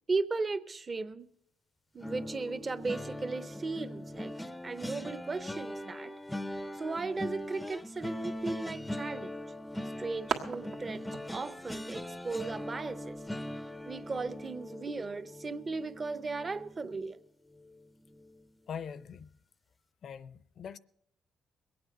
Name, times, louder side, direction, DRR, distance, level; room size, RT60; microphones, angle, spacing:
voice 1, 0.1-1.3 1.9-4.3 4.6-6.1 6.7-9.3 10.0-13.2 13.9-17.2, right 3 dB, 30° right, 0.7 m, -36 dB
sound 1, 2.0-17.1 17.5-17.8 18.1-18.3, left 1 dB, 10° left, 0.5 m, -41 dB
sound 2, 9.4-14.5, right 5 dB, 85° right, 1.5 m, -43 dB
voice 2, 18.7-19.3 20.0-20.8, left 7 dB, 60° left, 0.5 m, -42 dB
22.0 x 8.8 x 5.4 m
cardioid pair, 90°, 0 cm